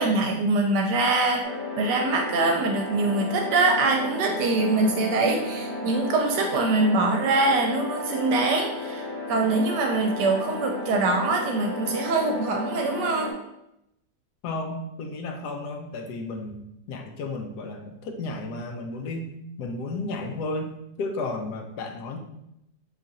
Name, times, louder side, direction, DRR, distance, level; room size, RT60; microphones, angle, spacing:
voice 1, 0.0-1.5 1.8-13.3, right 3 dB, 75° right, 2 dB, 1.1 m, -24 dB
sound 1, 1.4-13.3, left 2 dB, 35° left, 1.0 m, -33 dB
voice 2, 14.4-16.6 16.9-19.3 19.6-22.2, left 2 dB, 75° left, 4 dB, 1.1 m, -33 dB
3.8 x 2.4 x 4.0 m, 0.82 s
omnidirectional pair, 1.9 m